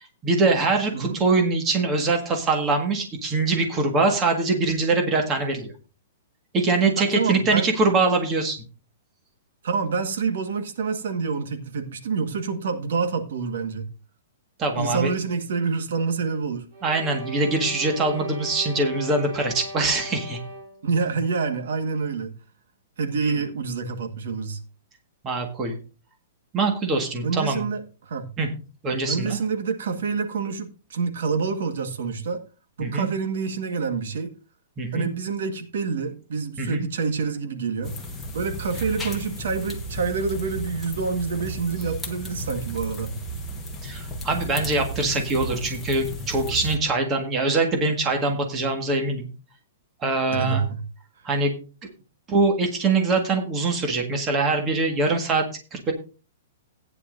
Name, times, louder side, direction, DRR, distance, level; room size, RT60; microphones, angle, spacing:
voice 1, 0.2-5.7 6.5-8.6 14.6-15.1 16.8-20.4 25.2-25.8 26.5-27.6 28.4-28.5 28.8-29.4 32.8-33.1 34.8-35.1 36.6-36.9 43.8-49.3 50.0-50.6 51.2-51.5 52.3-55.9, right 3 dB, 15° right, 1.7 m, -23 dB
voice 2, 7.0-7.7 9.6-13.9 14.8-16.7 20.8-22.3 23.0-24.6 27.2-28.3 29.1-32.4 32.8-34.3 34.9-38.0 38.3-43.2 50.3-50.8, right 5 dB, 65° right, 1.5 m, -27 dB
sound 1, 16.7-20.9, right 1 dB, 35° right, 3.8 m, -37 dB
sound 2, 37.8-46.8, right 1 dB, 5° left, 1.3 m, -34 dB
15.5 x 9.6 x 2.6 m
hypercardioid pair, 175°, 0 cm